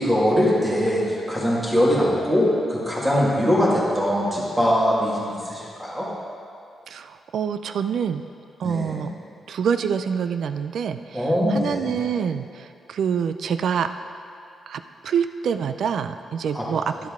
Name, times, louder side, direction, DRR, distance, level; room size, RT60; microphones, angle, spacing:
voice 1, 0.0-6.1 8.6-9.0 11.1-11.9 16.5-16.7, equal, 10° right, -6 dB, 1.9 m, -22 dB
voice 2, 6.9-8.2 8.6-9.1 9.5-13.9 14.7-17.1, right 7 dB, 65° right, 10 dB, 0.4 m, -26 dB
11.5 x 7.4 x 3.7 m, 2.5 s
wide cardioid pair, 150°, 0 cm